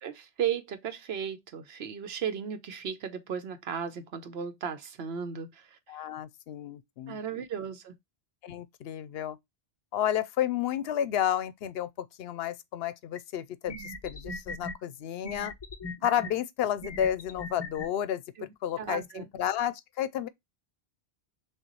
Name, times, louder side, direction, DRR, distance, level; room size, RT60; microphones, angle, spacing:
voice 1, 0.0-5.8 7.1-8.0 18.4-18.5 18.8-19.3, right 8 dB, 80° right, 1.0 m, -35 dB
voice 2, 5.9-7.2 8.4-9.4 9.9-15.5 16.0-18.2 18.6-20.3, left 10 dB, 75° left, 0.8 m, -31 dB
sound 1, 13.2-13.3 13.7-14.7 15.2-16.3 16.8-17.9, left 2 dB, 30° left, 0.6 m, -39 dB
6.3 x 2.4 x 2.9 m
omnidirectional pair, 1.1 m